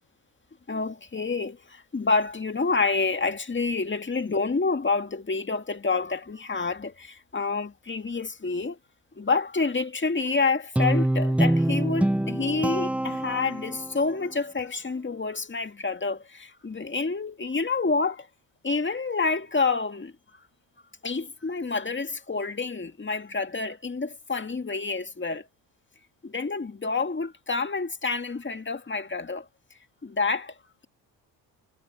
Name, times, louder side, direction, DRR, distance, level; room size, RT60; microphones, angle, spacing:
voice 1, 0.7-8.8 9.2-18.3 18.6-20.1 21.0-25.5 26.2-29.5 30.0-30.5, left 4 dB, 25° left, 2.1 m, -28 dB
Guitar, 10.8-14.0, right 1 dB, 5° right, 0.5 m, -25 dB
supercardioid pair, 65°, 46 cm